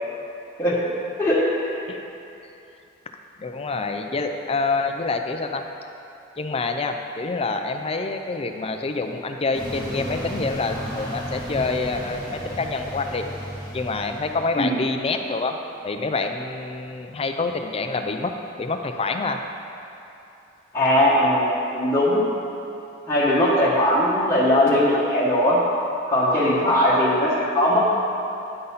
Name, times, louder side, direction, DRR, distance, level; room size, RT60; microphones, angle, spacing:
voice 1, 1.2-1.7 14.5-14.7 20.7-22.2 23.1-25.6 26.1-27.8, left 1 dB, 15° left, -9 dB, 1.2 m, -19 dB
voice 2, 3.4-5.6 6.4-13.2 13.7-15.6 15.8-18.3 18.6-19.4 26.9-27.0, left 3 dB, 30° left, 5 dB, 0.4 m, -27 dB
sound 1, 9.5-14.6, equal, 20° right, 1.9 m, -33 dB
9.8 x 4.0 x 5.6 m, 2.8 s
head